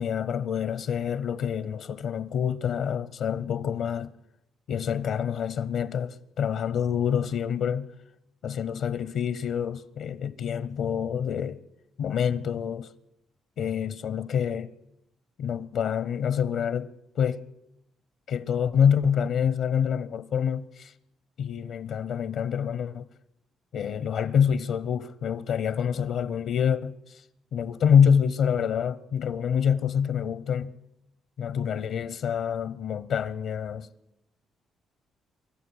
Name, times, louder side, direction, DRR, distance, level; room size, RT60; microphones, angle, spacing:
voice 1, 0.0-4.1 4.7-7.9 8.4-11.6 12.0-12.9 13.6-14.7 15.4-17.5 18.3-20.9 21.4-23.1 23.7-27.3 27.5-30.7 31.4-33.9, left 8 dB, 75° left, 0.8 m, -26 dB
24.5 x 13.5 x 10.0 m
cardioid pair, 90°, 0 cm